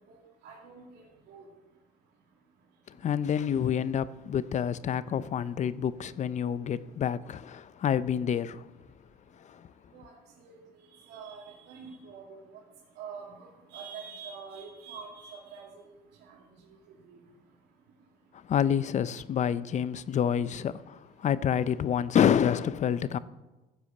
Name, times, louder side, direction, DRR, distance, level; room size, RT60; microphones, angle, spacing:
voice 1, 0.0-1.5 9.9-10.6 10.9-12.6 13.0-15.9 16.2-16.4 17.0-17.2, right 6 dB, 80° right, 2.6 m, -46 dB
voice 2, 2.9-8.7 9.4-9.7 18.3-23.2, left 8 dB, 45° left, 0.6 m, -28 dB
15.5 x 8.2 x 6.0 m
cardioid pair, 110°, 17 cm